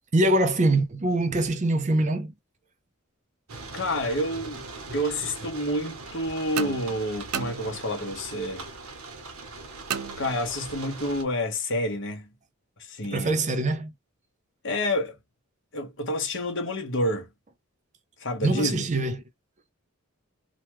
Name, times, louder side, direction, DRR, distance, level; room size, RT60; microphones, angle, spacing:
voice 1, 0.1-2.3 13.1-13.9 18.4-19.2, right 2 dB, 35° right, 0.5 m, -23 dB
sound 1, 3.5-11.2, right 3 dB, 75° right, 1.0 m, -41 dB
voice 2, 3.7-4.6 4.9-8.7 10.2-12.3 12.8-13.3 14.6-15.1 15.7-17.3 18.2-18.8, left 1 dB, 55° left, 1.1 m, -29 dB
sound 2, 6.6-8.2 9.9-10.9, right 7 dB, 90° right, 0.5 m, -35 dB
2.9 x 2.3 x 3.0 m
head